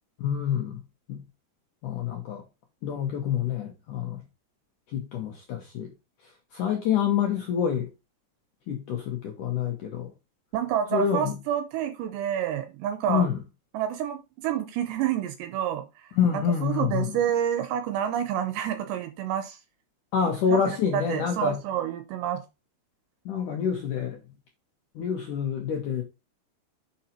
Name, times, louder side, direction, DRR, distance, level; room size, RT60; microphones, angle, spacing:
voice 1, 0.2-0.8 1.1-1.2 1.8-2.4 2.8-4.2 4.9-5.9 6.5-7.9 8.7-10.1 10.9-11.4 13.1-13.4 16.2-17.2 20.1-21.6 23.2-24.2 24.9-26.0, left 7 dB, 80° left, 1.8 m, -27 dB
voice 2, 10.5-13.3 13.7-19.6 20.5-22.4, right 9 dB, 80° right, 2.8 m, -29 dB
6.6 x 5.7 x 4.4 m
omnidirectional pair, 5.5 m